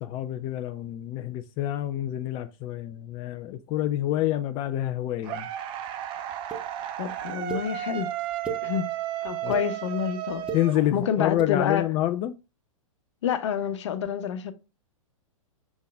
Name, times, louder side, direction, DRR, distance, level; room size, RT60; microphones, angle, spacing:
voice 1, 0.0-5.5 9.4-9.5 10.5-12.3, left 13 dB, 25° left, 0.4 m, -28 dB
sound 1, 5.2-11.3, right 12 dB, 30° right, 0.6 m, -33 dB
sound 2, 6.5-6.6 7.5-7.6 8.2-8.6 9.3-9.6 10.3-10.6 11.3-11.5, right 6 dB, 5° right, 1.3 m, -33 dB
voice 2, 7.0-8.1 8.6-8.9 9.2-10.4 10.9-11.9 13.2-14.5, left 8 dB, 55° left, 1.0 m, -28 dB
7.1 x 3.8 x 3.5 m
figure-of-eight pair, 105°, 18 cm